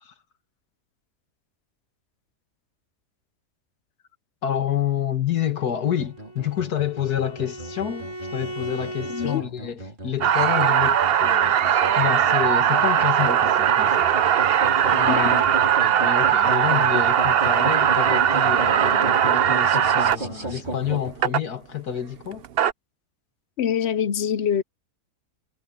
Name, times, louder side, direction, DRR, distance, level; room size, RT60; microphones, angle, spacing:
voice 1, 4.4-14.1 14.9-15.5 15.8-22.4, left 10 dB, 75° left, 2.3 m, -28 dB
Bowed string instrument, 5.9-9.5, right 1 dB, 25° left, 2.6 m, -37 dB
sound 1, 5.9-21.1, right 1 dB, 30° right, 3.7 m, -34 dB
voice 2, 9.1-9.4 15.1-15.4 23.6-24.6, left 8 dB, 60° left, 0.7 m, -24 dB
sound 2, 10.2-20.2 21.2-21.4 22.3-22.7, right 9 dB, 55° right, 0.7 m, -19 dB
omnidirectional pair, 1.7 m